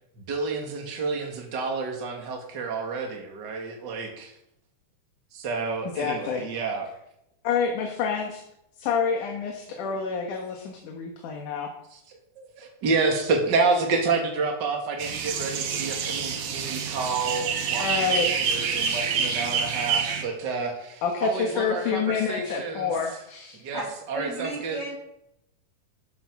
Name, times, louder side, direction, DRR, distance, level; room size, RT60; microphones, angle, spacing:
voice 1, 0.2-4.4 5.3-6.9 9.9-10.0 11.9-12.0 12.4-22.9 23.5-23.8 24.1-24.8, right 4 dB, 40° right, 2 dB, 2.3 m, -29 dB
voice 2, 5.9-6.4 7.4-8.4 8.8-11.7 17.8-18.3 21.0-23.6, left 6 dB, 75° left, 3 dB, 2.8 m, -28 dB
sound 1, 15.0-20.2, right 6 dB, 70° right, 2.8 m, -27 dB
voice 3, 24.1-24.9, right 2 dB, 20° left, -5 dB, 6.7 m, -33 dB
13.0 x 10.0 x 4.8 m, 0.80 s
omnidirectional pair, 3.7 m